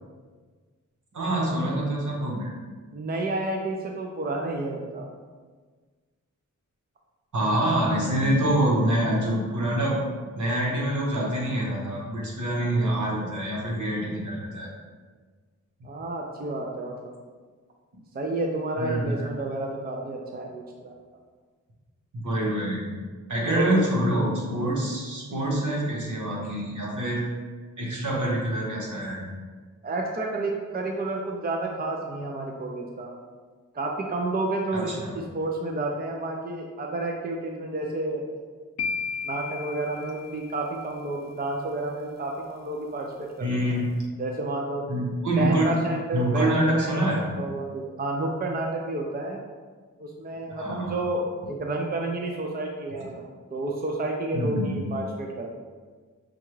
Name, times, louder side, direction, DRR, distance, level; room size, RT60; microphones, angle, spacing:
voice 1, 1.1-2.5 7.3-9.9 10.4-14.7 18.8-19.3 22.2-22.9 23.3-27.2 27.8-29.3 34.7-35.1 43.4-43.8 44.9-45.7 46.1-47.2 50.6-51.0 54.3-54.8, right 1 dB, 75° right, -4 dB, 1.2 m, -26 dB
voice 2, 2.9-5.0 15.8-17.1 18.1-20.9 23.5-23.9 29.8-33.1 33.7-38.3 39.2-43.8 44.2-44.8 45.4-49.4 50.0-53.2 53.5-55.5, right 2 dB, 30° right, 0 dB, 0.5 m, -30 dB
sound 1, 38.8-40.9, left 5 dB, 60° left, 0.4 m, -34 dB
6.2 x 2.3 x 3.1 m, 1.5 s
wide cardioid pair, 85°, 31 cm